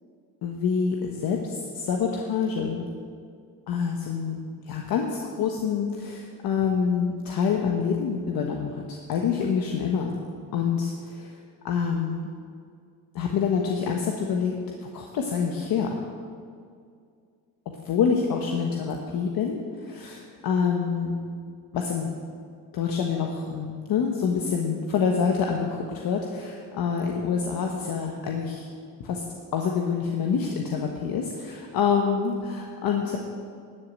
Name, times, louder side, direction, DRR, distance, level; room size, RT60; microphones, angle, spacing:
voice 1, 0.4-2.9 3.7-10.1 10.5-11.4 11.6-12.2 13.1-14.5 14.8-15.9 17.8-21.1 21.7-22.1 22.7-28.7 29.0-29.2 29.5-33.2, left 6 dB, 80° left, 1 dB, 1.3 m, -26 dB
12.5 x 7.5 x 8.1 m, 2.2 s
cardioid pair, 100°, 35 cm